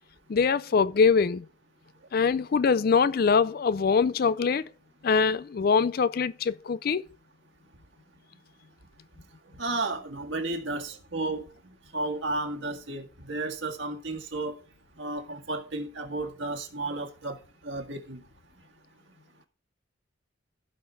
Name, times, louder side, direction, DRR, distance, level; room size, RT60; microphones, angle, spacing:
voice 1, 0.3-1.5 2.1-4.6 5.0-7.0, left 5 dB, 45° left, 0.4 m, -23 dB
voice 2, 9.6-11.4 11.9-14.5 15.0-17.4 17.6-18.2, right 2 dB, 70° right, 1.7 m, -33 dB
15.5 x 5.7 x 3.4 m
head